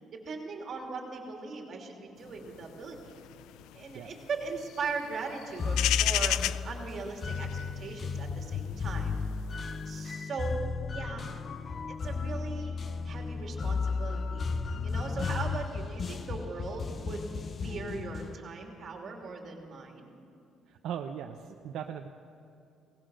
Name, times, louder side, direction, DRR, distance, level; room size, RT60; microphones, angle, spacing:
voice 1, 0.1-3.0 3.7-7.5 7.8-9.1 9.8-10.6 10.9-11.4 11.9-12.7 13.0-14.4 14.8-17.3 17.6-20.1, right 4 dB, 35° right, 2 dB, 2.8 m, -39 dB
sound 1, 2.4-10.1, left 14 dB, 85° left, 0.4 m, -33 dB
sound 2, 5.6-18.4, left 4 dB, 30° left, 0.5 m, -34 dB
voice 2, 20.7-22.1, right 8 dB, 60° right, 4 dB, 0.8 m, -39 dB
22.5 x 18.5 x 6.4 m, 2.8 s
cardioid pair, 170°, 0 cm